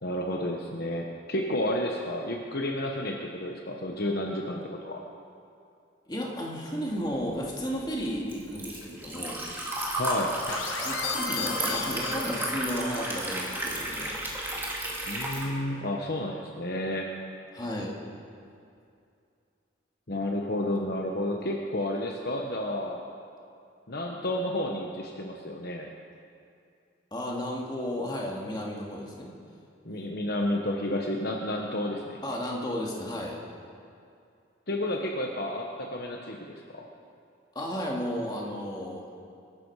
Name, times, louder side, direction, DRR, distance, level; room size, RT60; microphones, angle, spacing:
voice 1, 0.0-5.0 10.0-10.3 15.1-17.1 20.1-23.0 23.9-25.9 29.8-32.2 34.7-36.8, left 1 dB, 50° left, 1 dB, 1.1 m, -31 dB
voice 2, 6.1-9.4 10.8-14.1 17.5-17.9 27.1-29.3 32.2-33.4 37.5-39.0, equal, 20° left, -2 dB, 2.2 m, -33 dB
Liquid, 7.2-15.5, right 1 dB, 10° right, 2.1 m, -33 dB
sound 1, 10.5-12.9, left 5 dB, 80° left, 1.4 m, -35 dB
23.0 x 12.0 x 4.8 m, 2.5 s
head